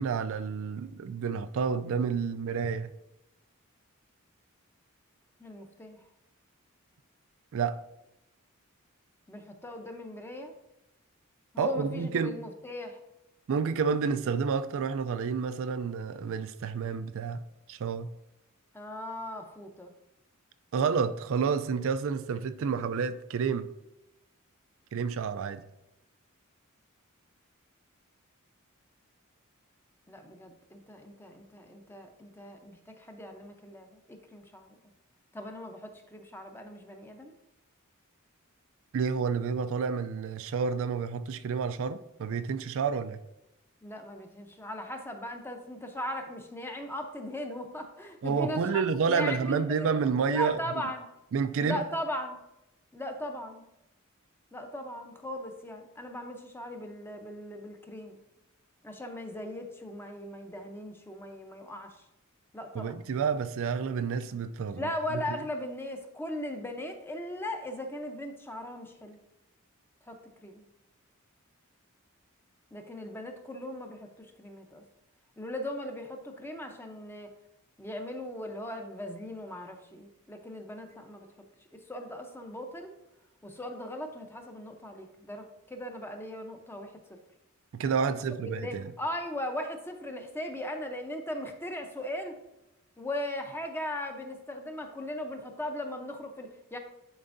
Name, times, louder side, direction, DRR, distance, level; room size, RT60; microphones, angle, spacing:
voice 1, 0.0-2.9 7.5-7.8 11.6-12.4 13.5-17.4 17.7-18.1 20.7-23.7 24.9-25.6 38.9-43.2 48.2-50.6 51.3-51.8 62.7-64.9 65.3-65.4 87.7-88.9, right 5 dB, 65° right, 11 dB, 0.4 m, -29 dB
voice 2, 5.4-6.0 9.3-10.5 11.5-13.0 18.7-19.9 30.1-34.7 35.3-37.3 43.8-49.9 50.3-51.1 51.6-52.4 52.9-53.6 54.5-58.2 58.8-61.9 62.5-63.0 64.7-69.2 70.1-70.6 72.7-74.8 75.4-77.3 77.8-81.3 81.9-82.9 83.4-87.2 88.5-92.4 93.0-96.8, left 1 dB, 10° left, 5 dB, 0.7 m, -38 dB
10.5 x 4.4 x 2.6 m, 0.91 s
head